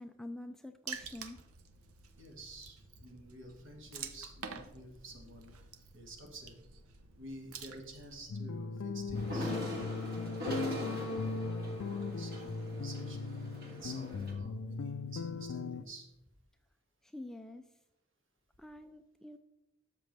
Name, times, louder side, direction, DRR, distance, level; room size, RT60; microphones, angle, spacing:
voice 1, 0.0-1.4 17.0-17.7 18.6-19.4, left 1 dB, ahead, 7 dB, 0.3 m, -46 dB
Water / Splash splatter, 0.9-8.3, right 6 dB, 90° right, 0.8 m, -49 dB
voice 2, 2.2-5.5 5.9-6.6 7.1-9.5 10.1-11.5 11.8-13.3 13.7-16.1, right 1 dB, 65° right, 2 dB, 2.0 m, -50 dB
sound 1, 8.3-15.8, left 4 dB, 80° left, 0.4 m, -38 dB
sound 2, 9.1-14.3, equal, 45° right, 1.9 m, -41 dB
12.5 x 6.8 x 3.4 m, 0.93 s
head